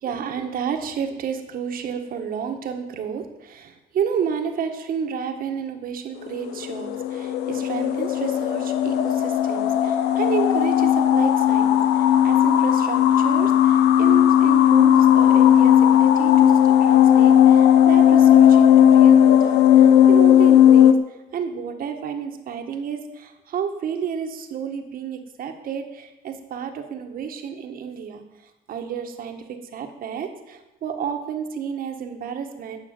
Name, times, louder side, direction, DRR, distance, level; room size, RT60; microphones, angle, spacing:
voice 1, 0.0-32.8, right 7 dB, 60° right, 5 dB, 1.8 m, -31 dB
sound 1, 6.3-20.9, left 10 dB, 80° left, 0.9 m, -16 dB
12.0 x 6.9 x 9.0 m, 1.1 s
cardioid pair, 110°, 17 cm